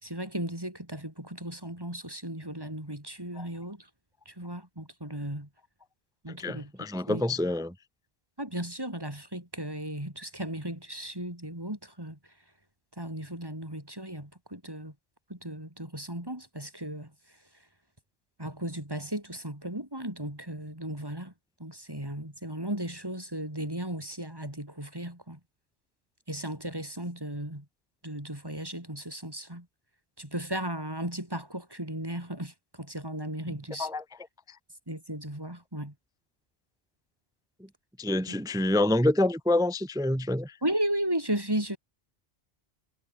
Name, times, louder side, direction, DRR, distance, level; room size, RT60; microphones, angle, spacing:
voice 1, 0.0-3.8 4.3-5.5 6.2-6.7 7.1-7.2 8.4-12.2 13.0-14.9 15.3-17.1 18.4-21.3 21.6-25.4 26.3-27.6 28.0-29.6 30.2-33.9 34.9-35.9 40.6-41.8, right 1 dB, 20° right, 4.7 m, -35 dB
voice 2, 6.4-7.7 33.5-34.0 38.0-40.5, left 1 dB, 5° right, 0.4 m, -27 dB
omnidirectional pair, 1.0 m